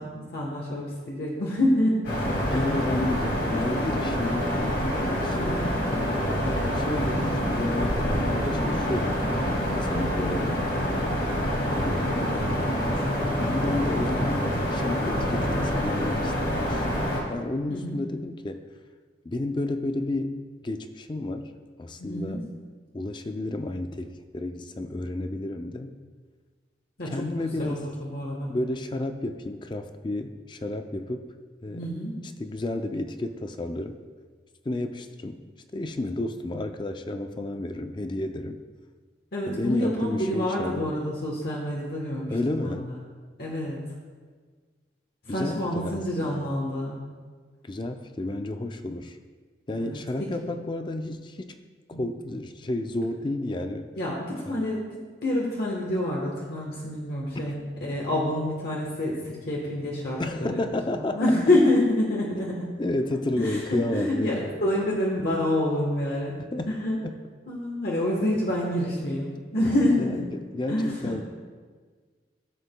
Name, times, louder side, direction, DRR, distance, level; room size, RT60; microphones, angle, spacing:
voice 1, 0.0-2.0 2.5-2.6 3.0-3.1 5.3-5.7 9.9-10.4 17.7-18.0 22.0-22.4 27.0-28.5 31.7-32.1 39.3-42.9 43.4-43.8 45.2-47.0 49.8-50.5 51.9-52.0 54.0-60.7 61.1-62.8 63.3-66.4 66.7-67.0 67.5-70.3 70.7-71.2, left 1 dB, 60° left, -3 dB, 1.1 m, -27 dB
sound 1, 2.0-17.2, equal, 75° left, 2.2 m, -26 dB
voice 2, 2.3-4.8 5.1-5.8 6.1-9.2 9.7-10.6 11.6-12.4 13.4-18.7 19.2-21.5 21.8-22.5 22.9-26.0 27.1-27.9 28.5-31.3 31.6-31.9 32.4-34.0 34.7-35.4 35.7-38.6 39.5-40.9 42.3-42.9 45.3-46.4 47.6-49.2 49.7-51.5 51.9-53.9 54.5-54.6 57.4-57.6 60.2-61.2 62.8-64.5 66.5-66.7 67.0-67.2 70.0-71.2, left 2 dB, 25° left, 7 dB, 0.4 m, -31 dB
14.5 x 7.1 x 2.2 m, 1.5 s
head